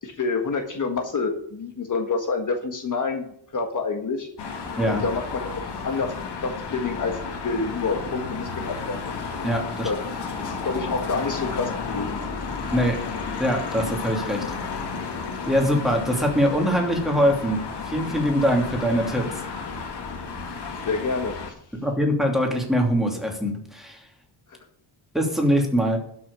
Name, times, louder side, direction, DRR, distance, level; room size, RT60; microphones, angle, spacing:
voice 1, 0.0-4.3 4.9-9.0 9.8-10.0 10.4-12.2 20.8-21.3 24.5-24.6, left 4 dB, 45° left, 4 dB, 1.5 m, -28 dB
sound 1, 4.4-21.5, left 5 dB, 65° left, 2.3 m, -32 dB
voice 2, 9.4-9.9 12.7-13.0 13.4-14.4 15.5-19.3 21.8-24.0 25.1-26.0, equal, ahead, 0 dB, 2.8 m, -23 dB
12.0 x 6.1 x 6.8 m, 0.69 s
wide cardioid pair, 135°, 44 cm